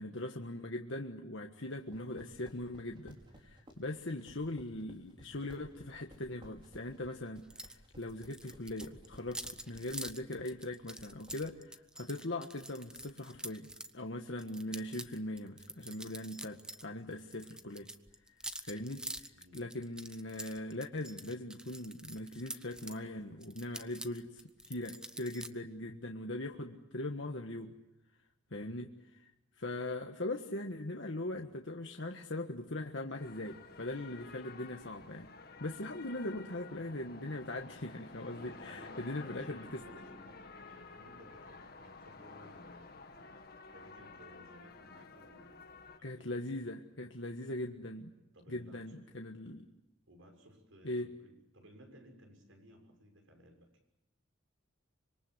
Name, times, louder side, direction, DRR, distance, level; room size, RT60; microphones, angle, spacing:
voice 1, 0.0-17.9 18.6-24.4 24.7-27.7 28.5-28.9 29.6-35.3 35.6-39.8 46.0-48.1 48.5-49.7 50.8-51.1, left 1 dB, 65° left, 3 dB, 1.5 m, -40 dB
sound 1, 1.8-11.4, equal, 25° right, 5.3 m, -57 dB
sound 2, 7.5-7.8 8.0-13.9 14.4-16.9 17.1-23.0 23.4-25.5, right 1 dB, 5° right, 0.9 m, -46 dB
voice 2, 19.3-19.7 38.1-43.4 43.7-46.7 47.4-47.7 48.3-49.0 50.1-53.7, equal, 75° right, 4 dB, 6.6 m, -58 dB
sound 3, 33.1-46.0, left 4 dB, 50° left, 2.1 m, -52 dB
26.0 x 23.5 x 8.1 m, 0.93 s
head